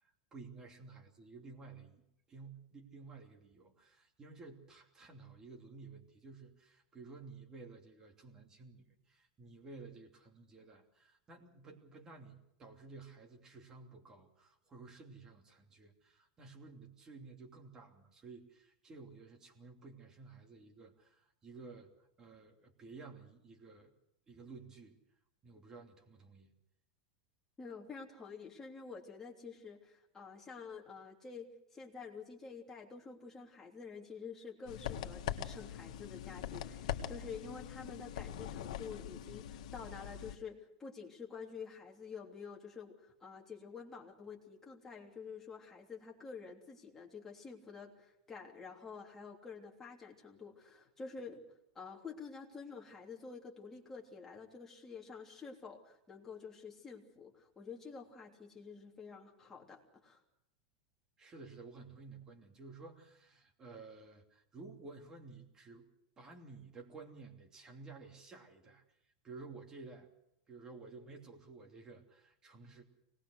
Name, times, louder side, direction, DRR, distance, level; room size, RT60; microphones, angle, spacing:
voice 1, 0.0-2.0 2.3-23.9 24.3-25.0 25.4-26.5 61.2-65.9 66.2-68.8 69.2-70.1 70.5-72.8, right 4 dB, 15° right, 2 dB, 2.9 m, -53 dB
voice 2, 27.6-51.4 51.7-60.2, left 5 dB, 10° left, -1 dB, 3.2 m, -49 dB
sound 1, 34.7-40.4, left 10 dB, 70° left, 1.8 m, -42 dB
24.5 x 19.5 x 6.4 m, 0.78 s
supercardioid pair, 165°, 4 cm